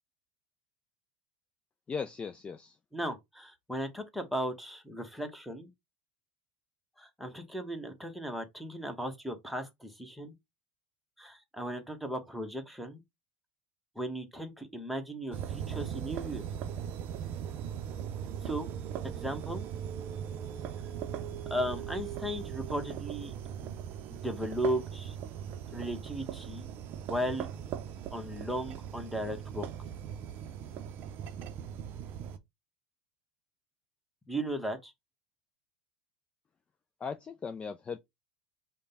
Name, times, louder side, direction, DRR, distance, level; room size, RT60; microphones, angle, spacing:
voice 1, 1.9-2.8 37.0-38.0, left 5 dB, 25° left, 0.4 m, -38 dB
voice 2, 2.9-5.7 7.0-10.3 11.2-13.0 13.9-16.4 18.4-18.7 19.0-19.6 21.5-23.3 23.6-23.7 24.1-25.2 25.7-26.7 27.1-27.5 28.1-29.7 34.3-34.9, equal, ahead, 1.1 m, -36 dB
sound 1, 15.3-32.4, right 9 dB, 45° right, 0.6 m, -39 dB
5.0 x 2.2 x 4.0 m
hypercardioid pair, 80°, 5 cm